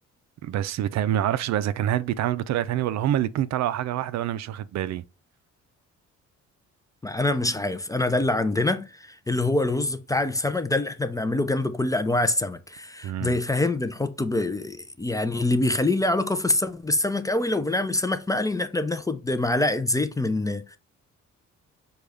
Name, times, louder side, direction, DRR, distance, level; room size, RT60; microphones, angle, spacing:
voice 1, 0.4-5.0 13.0-13.4, right 12 dB, 65° right, 0.4 m, -26 dB
voice 2, 7.0-20.8, left 2 dB, 10° left, 0.4 m, -25 dB
6.2 x 2.3 x 3.4 m
cardioid pair, 90°, 30 cm